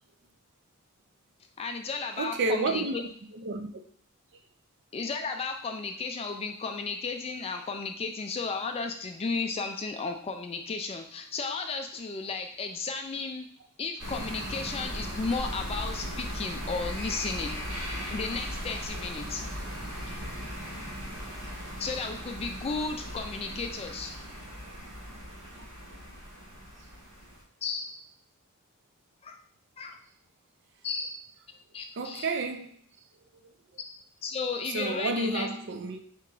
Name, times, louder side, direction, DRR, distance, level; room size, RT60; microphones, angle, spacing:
voice 1, 1.6-3.0 4.9-13.5 13.8-17.6 18.1-19.4 21.8-24.1 27.6-27.9 29.2-29.4 29.8-30.0 30.8-31.1 31.7-32.3 34.2-35.5, left 4 dB, 25° left, 0.3 m, -34 dB
voice 2, 2.2-3.0 3.3-3.7 32.0-32.7 33.4-33.5 34.6-36.0, right 3 dB, 55° right, 0.4 m, -30 dB
sound 1, 14.0-27.4, equal, 90° right, 1.7 m, -38 dB
3.5 x 2.9 x 4.6 m
head